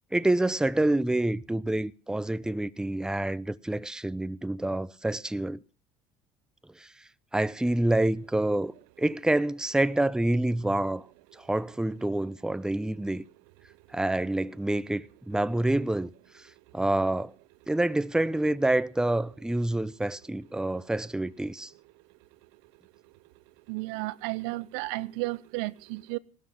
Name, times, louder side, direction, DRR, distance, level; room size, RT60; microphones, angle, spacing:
voice 1, 0.1-5.6 6.8-6.9 7.3-8.7 9.0-11.1 11.3-13.2 13.9-16.1 16.3-16.5 16.7-17.3 17.7-21.7, right 1 dB, 5° right, 0.6 m, -27 dB
voice 2, 23.7-26.2, right 22 dB, 75° right, 0.7 m, -33 dB
18.0 x 12.5 x 5.6 m
supercardioid pair, 75°, 16 cm